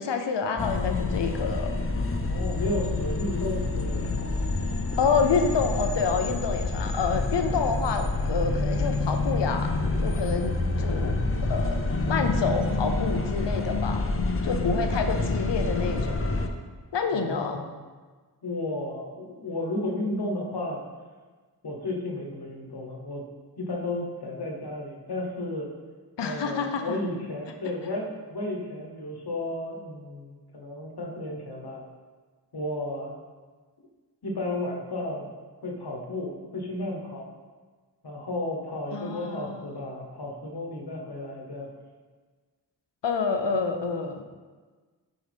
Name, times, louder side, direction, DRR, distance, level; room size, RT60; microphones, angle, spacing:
voice 1, 0.0-1.7 5.0-9.7 10.0-11.2 11.5-14.0 14.4-16.1 16.9-17.6 26.2-27.0 38.9-39.6 43.0-44.2, left 5 dB, 85° left, 6 dB, 0.6 m, -28 dB
sound 1, 0.6-16.5, left 3 dB, 35° left, 0.5 m, -27 dB
voice 2, 2.3-4.1 17.1-17.8 18.4-20.8 21.6-23.2 23.6-25.7 26.2-31.8 32.5-33.2 34.2-35.3 35.6-37.3 38.0-41.7, left 1 dB, 65° left, -1 dB, 1.2 m, -33 dB
6.4 x 4.8 x 3.5 m, 1.4 s
wide cardioid pair, 65°, 41 cm